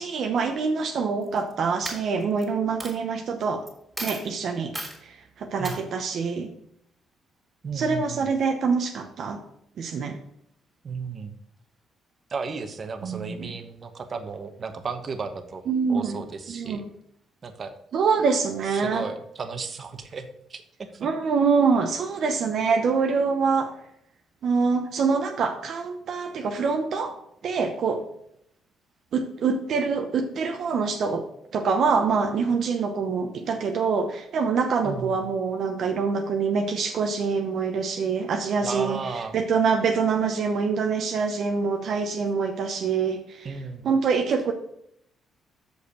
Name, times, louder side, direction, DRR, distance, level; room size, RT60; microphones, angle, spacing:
voice 1, 0.0-3.6 4.0-4.7 5.0-6.5 7.7-9.4 9.8-10.2 13.0-13.5 15.7-16.2 16.5-16.9 17.9-19.0 21.0-23.7 24.4-27.2 27.4-28.0 29.1-31.3 31.5-39.0 39.3-43.6 43.8-44.5, right 5 dB, 65° right, 4 dB, 0.8 m, -25 dB
Coin (dropping), 1.2-1.5 1.8-2.4 2.8-2.9 3.7-3.8 4.0-4.3 4.7-5.0 5.6-5.8, right 1 dB, 5° right, 2.8 m, -34 dB
voice 2, 7.6-8.3 10.8-11.3 12.3-15.6 15.9-16.8 17.4-17.7 18.7-20.6 20.9-21.1 34.8-35.2 38.6-39.4 43.4-43.9, right 5 dB, 45° right, 7 dB, 1.1 m, -34 dB
6.6 x 5.3 x 6.6 m, 0.74 s
cardioid pair, 90°, 0 cm